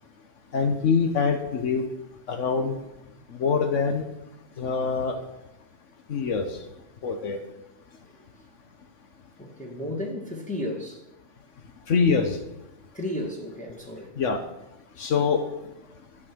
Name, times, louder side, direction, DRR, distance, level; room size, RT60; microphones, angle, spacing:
voice 1, 0.5-1.9 2.3-2.8 3.3-4.0 4.6-5.2 6.1-6.6 7.0-7.4 11.9-12.4 14.2-14.4 15.0-15.4, left 5 dB, 75° left, 6 dB, 1.4 m, -24 dB
voice 2, 9.4-11.1 12.9-14.1, left 1 dB, 5° left, -2 dB, 1.7 m, -33 dB
12.0 x 7.5 x 6.2 m, 0.91 s
omnidirectional pair, 1.3 m